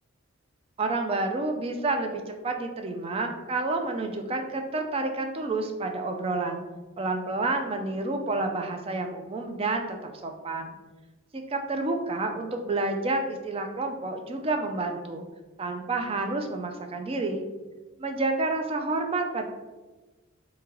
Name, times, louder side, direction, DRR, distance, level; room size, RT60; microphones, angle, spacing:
voice 1, 0.8-6.6 7.0-10.0 10.2-10.8 11.3-15.2 15.6-17.4 18.0-19.5, right 2 dB, 25° right, 5 dB, 0.3 m, -29 dB
3.0 x 2.7 x 3.8 m, 1.2 s
head